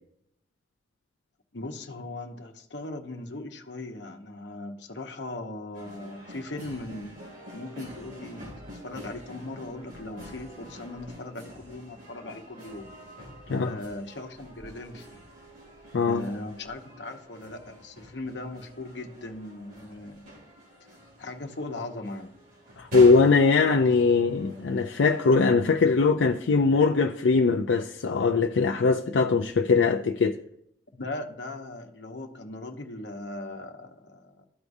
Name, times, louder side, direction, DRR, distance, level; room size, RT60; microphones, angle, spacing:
voice 1, 1.5-12.9 13.6-15.2 16.0-20.5 21.2-22.3 30.9-34.4, left 2 dB, 70° left, 1.0 m, -39 dB
sound 1, 5.7-25.3, equal, 50° right, 2.5 m, -46 dB
voice 2, 22.8-30.4, left 4 dB, 85° left, 0.5 m, -21 dB
14.0 x 4.7 x 2.7 m
head